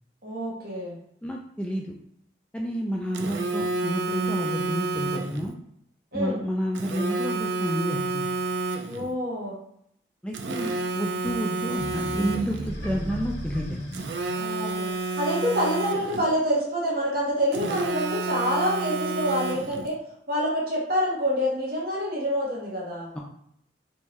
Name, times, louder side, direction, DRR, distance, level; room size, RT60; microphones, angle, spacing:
voice 1, 0.2-1.0 6.1-6.4 8.9-9.5 14.3-14.9 15.2-20.0 20.3-23.1, equal, 55° right, -5 dB, 1.2 m, -27 dB
voice 2, 1.2-1.9 2.5-5.5 6.1-8.3 10.2-13.8 23.1-23.2, equal, 5° left, -1 dB, 0.3 m, -30 dB
Telephone, 3.1-5.5 6.8-9.1 10.3-12.7 13.9-16.3 17.5-19.9, right 3 dB, 70° right, 0.4 m, -30 dB
sound 1, 11.8-16.1, equal, 70° left, 1.2 m, -36 dB
3.5 x 2.7 x 3.1 m, 0.71 s
head